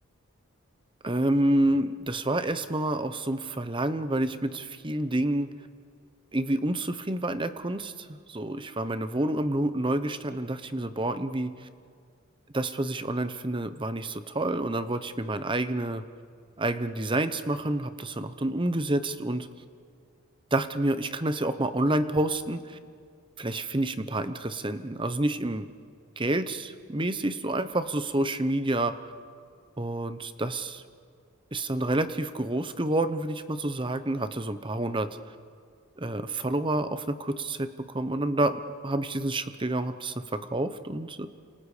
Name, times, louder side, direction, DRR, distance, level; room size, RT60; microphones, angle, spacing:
voice 1, 1.0-5.5 6.3-11.7 12.5-16.0 16.6-19.5 20.5-22.8 23.4-25.7 26.2-29.1 29.8-30.8 31.5-35.1 36.0-41.3, right 1 dB, 20° right, 11 dB, 0.9 m, -28 dB
30.0 x 27.0 x 5.1 m, 2.1 s
head